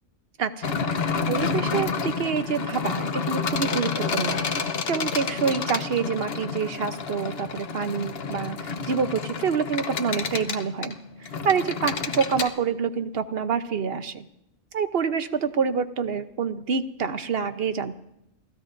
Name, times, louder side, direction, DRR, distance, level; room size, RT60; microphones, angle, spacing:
voice 1, 0.4-1.0 1.3-4.4 4.9-10.9 11.4-14.2 14.7-18.0, right 6 dB, 55° right, 10 dB, 1.0 m, -27 dB
sound 1, 0.6-12.5, left 5 dB, 55° left, 1.2 m, -29 dB
29.0 x 16.5 x 2.6 m, 0.79 s
omnidirectional pair, 1.3 m